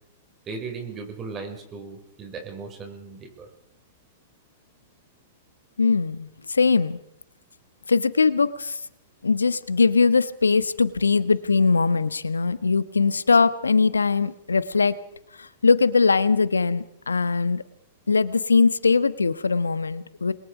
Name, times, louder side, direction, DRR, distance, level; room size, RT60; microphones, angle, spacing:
voice 1, 0.5-3.5, right 4 dB, 25° right, 3 dB, 6.1 m, -37 dB
voice 2, 5.8-7.0 7.9-8.8 9.2-15.0 15.4-17.6 18.1-20.3, left 4 dB, 90° left, 15 dB, 1.3 m, -21 dB
28.5 x 22.0 x 5.1 m, 0.76 s
hypercardioid pair, 110°, 0 cm